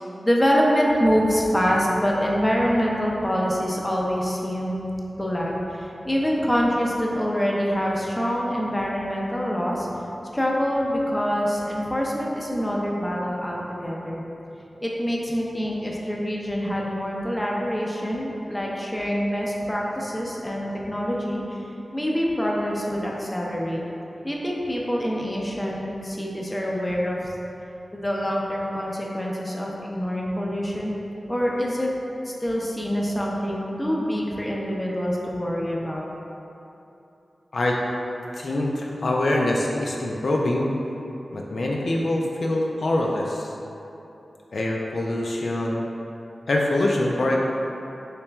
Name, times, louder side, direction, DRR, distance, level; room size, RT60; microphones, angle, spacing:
voice 1, 0.2-4.9 5.2-9.9 10.3-14.2 14.8-21.6 21.9-23.8 24.2-27.3 27.9-30.9 31.3-31.9 32.3-36.0, equal, 15° left, -3 dB, 0.5 m, -25 dB
voice 2, 38.3-40.7 41.3-43.5 44.5-45.8 46.5-47.4, left 1 dB, 70° left, -2 dB, 0.3 m, -24 dB
3.3 x 3.0 x 3.3 m, 2.9 s
wide cardioid pair, 60°, 0 cm